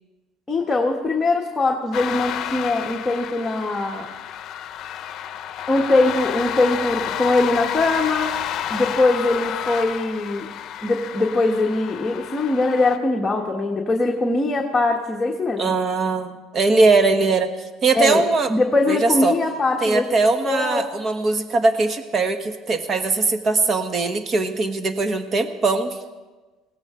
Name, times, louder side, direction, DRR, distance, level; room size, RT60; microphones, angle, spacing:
voice 1, 0.5-4.1 5.7-8.3 8.7-10.5 10.8-15.7 17.9-18.2 18.5-20.0 20.4-20.9, left 2 dB, 15° left, 0 dB, 1.4 m, -21 dB
sound 1, 1.9-13.0, left 10 dB, 55° left, 0.7 m, -30 dB
voice 2, 15.6-17.5 17.8-18.5 18.9-19.3 19.8-26.0, right 3 dB, 35° right, 8 dB, 1.3 m, -20 dB
20.0 x 16.5 x 3.8 m, 1.2 s
cardioid pair, 115°, 0 cm